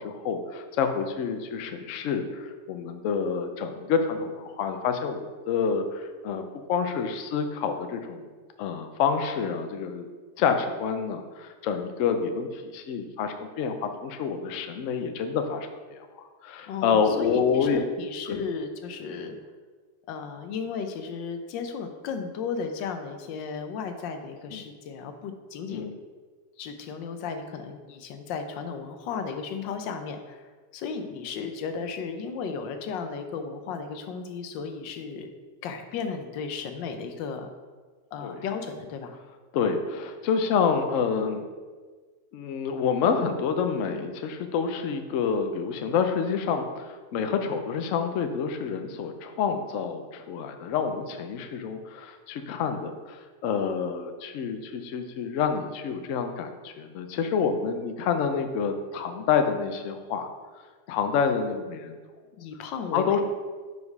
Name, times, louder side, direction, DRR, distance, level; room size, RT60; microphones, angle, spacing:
voice 1, 0.0-6.4 6.7-8.3 8.6-10.1 10.4-16.1 16.4-17.8 18.3-18.4 24.5-24.6 25.7-26.0 38.2-38.4 39.5-41.5 42.3-60.3 60.9-61.9 62.9-63.2, left 6 dB, 70° left, 6 dB, 0.7 m, -28 dB
voice 2, 16.7-19.4 20.1-25.9 26.6-30.4 30.7-35.3 35.6-37.5 38.1-39.2 62.4-63.2, left 5 dB, 85° left, 7 dB, 1.4 m, -34 dB
4.9 x 4.8 x 5.3 m, 1.4 s
omnidirectional pair, 1.9 m